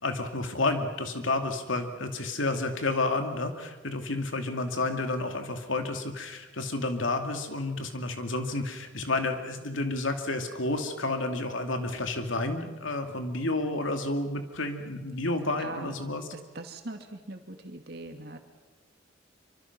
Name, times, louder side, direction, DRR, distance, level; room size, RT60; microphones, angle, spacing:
voice 1, 0.0-16.2, left 2 dB, 85° left, 6 dB, 2.6 m, -30 dB
voice 2, 15.6-16.0 16.3-18.4, right 2 dB, 55° right, 5 dB, 2.5 m, -41 dB
27.0 x 25.0 x 6.1 m, 1.2 s
head